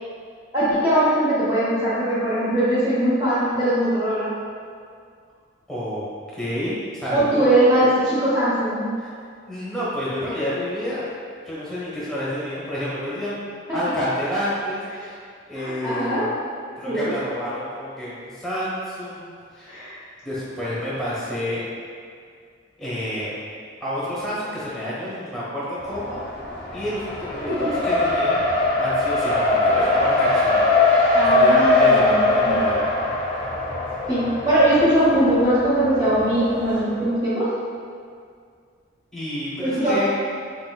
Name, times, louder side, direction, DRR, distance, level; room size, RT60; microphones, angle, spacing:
voice 1, 0.5-4.3 7.1-8.9 15.0-15.1 15.5-16.3 16.9-17.1 19.7-20.0 27.5-27.7 31.1-32.5 34.1-37.5 39.6-40.0, right 1 dB, 20° right, -11 dB, 0.7 m, -21 dB
voice 2, 5.7-6.0 6.4-7.5 9.0-9.1 9.5-11.1 11.4-15.2 15.5-16.3 16.7-19.7 20.2-21.6 22.8-23.3 23.8-26.2 26.7-32.8 39.1-40.1, equal, ahead, -9 dB, 1.0 m, -29 dB
Race car auto racing, 25.8-36.8, left 2 dB, 25° left, 0.6 m, -21 dB
4.1 x 4.1 x 2.2 m, 2.1 s
head